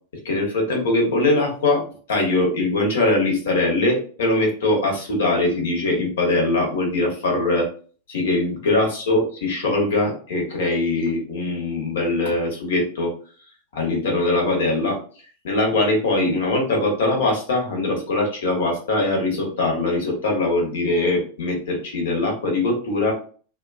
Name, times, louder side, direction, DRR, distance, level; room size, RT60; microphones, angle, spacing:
voice 1, 0.2-7.7 8.1-13.1 13.7-15.0 15.4-23.1, left 2 dB, 60° left, 0 dB, 1.0 m, -22 dB
2.4 x 2.4 x 2.4 m, 0.42 s
figure-of-eight pair, 90°, 0 cm